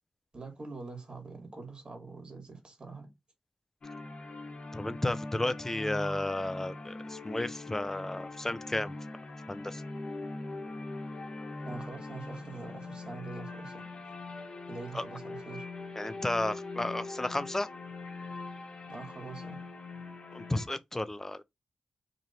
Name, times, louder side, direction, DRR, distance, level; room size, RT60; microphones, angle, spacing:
voice 1, 0.3-3.1 11.6-13.8 14.7-15.7 18.9-19.6, right 4 dB, 45° right, 1.8 m, -44 dB
sound 1, 3.8-20.7, left 3 dB, 60° left, 1.0 m, -42 dB
voice 2, 4.7-8.9 9.5-9.8 14.9-15.0 16.0-17.7 20.3-21.4, left 1 dB, 20° left, 0.6 m, -33 dB
3.1 x 2.5 x 4.3 m
cardioid pair, 55°, 2 cm